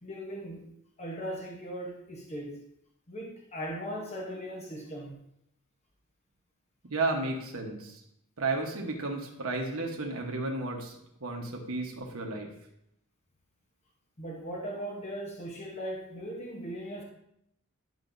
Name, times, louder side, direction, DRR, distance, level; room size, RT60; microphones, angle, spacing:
voice 1, 0.0-0.7 1.0-2.6 3.1-5.2 14.2-17.0, equal, 30° left, -2 dB, 1.0 m, -38 dB
voice 2, 6.9-8.0 8.4-12.5, right 3 dB, 70° right, 0 dB, 1.2 m, -33 dB
11.0 x 6.0 x 2.6 m, 0.76 s
head